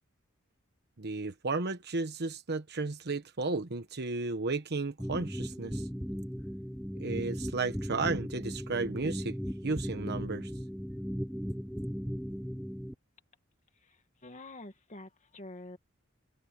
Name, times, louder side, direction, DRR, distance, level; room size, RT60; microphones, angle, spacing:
voice 1, 1.0-5.9 6.9-9.4 9.6-10.5, right 3 dB, 50° right, 1.1 m, -33 dB
sound 1, 5.0-12.9, equal, ahead, 0.6 m, -37 dB
voice 2, 13.7-15.8, left 2 dB, 35° left, 2.2 m, -48 dB
head